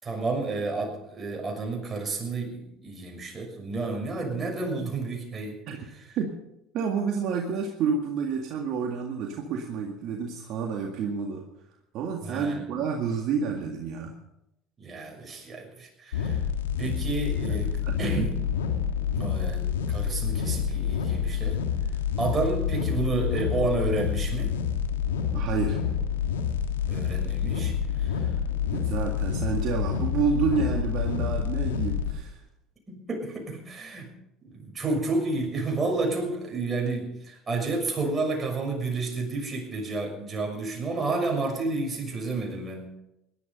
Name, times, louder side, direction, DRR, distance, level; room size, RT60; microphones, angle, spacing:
voice 1, 0.0-5.6 12.2-12.7 14.8-16.4 16.8-18.3 19.1-21.6 22.2-24.5 26.9-28.3 32.9-34.1 34.4-42.8, right 3 dB, 30° right, 1 dB, 6.4 m, -31 dB
voice 2, 6.7-11.4 11.9-14.2 17.8-18.5 25.3-25.8 28.7-32.4, right 6 dB, 60° right, 2 dB, 2.0 m, -29 dB
sound 1, 16.1-32.1, left 8 dB, 85° left, 1.5 m, -28 dB
18.0 x 12.0 x 5.5 m, 0.86 s
hypercardioid pair, 70°, 0 cm